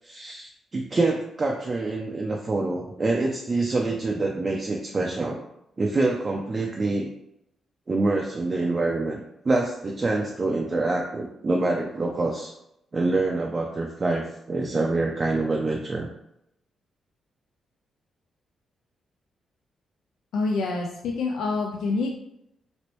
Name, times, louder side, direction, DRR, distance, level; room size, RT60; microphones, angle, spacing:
voice 1, 0.0-5.4 5.8-7.1 7.9-12.5 12.9-16.1, right 2 dB, 30° right, 0 dB, 0.4 m, -26 dB
voice 2, 20.3-22.2, left 3 dB, 80° left, 0 dB, 0.4 m, -27 dB
3.0 x 3.0 x 3.0 m, 0.81 s
cardioid pair, 120°, 0 cm